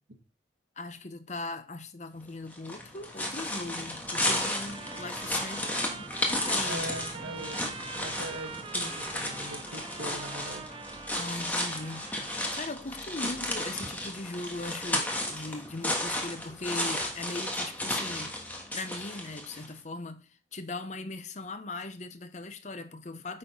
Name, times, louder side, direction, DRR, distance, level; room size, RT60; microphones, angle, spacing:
voice 1, 0.8-6.9 11.1-18.3 18.7-23.4, left 2 dB, 40° left, 0.7 m, -39 dB
sound 1, 2.5-19.7, left 1 dB, 10° left, 1.3 m, -33 dB
Trumpet, 4.1-12.6, right 5 dB, 30° right, 0.5 m, -44 dB
voice 2, 6.6-7.6 8.0-10.7, right 1 dB, 90° right, 1.4 m, -41 dB
8.8 x 4.3 x 5.3 m
head